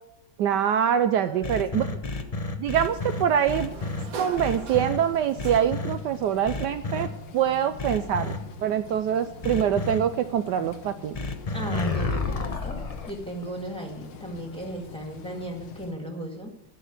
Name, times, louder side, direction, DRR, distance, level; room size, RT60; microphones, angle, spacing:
voice 1, 0.4-2.0 2.6-3.7 4.1-7.1 7.3-8.3 8.6-11.2, right 9 dB, 75° right, 9 dB, 1.2 m, -24 dB
voice 2, 1.1-1.6 11.5-12.8 13.1-16.5, right 1 dB, 5° left, 1 dB, 1.8 m, -36 dB
sound 1, 1.4-4.0 4.4-5.0 5.4-5.9 6.5-7.1 7.8-8.4 9.4-10.0 11.1-13.1, left 3 dB, 35° left, 0.6 m, -30 dB
Sliding door, 2.1-6.1, right 5 dB, 55° right, 1.3 m, -42 dB
sound 2, 2.7-15.9, left 5 dB, 80° left, 1.7 m, -45 dB
13.0 x 6.2 x 9.4 m, 0.90 s
omnidirectional pair, 2.0 m